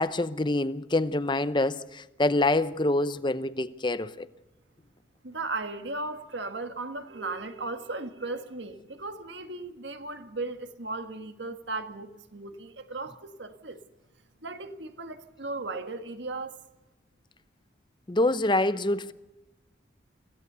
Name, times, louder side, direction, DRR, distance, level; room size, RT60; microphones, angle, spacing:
voice 1, 0.0-4.3 18.1-19.1, left 2 dB, 25° left, 0.7 m, -26 dB
voice 2, 5.2-13.8 14.4-16.6, right 3 dB, 65° right, 1.7 m, -36 dB
24.5 x 16.5 x 6.9 m
head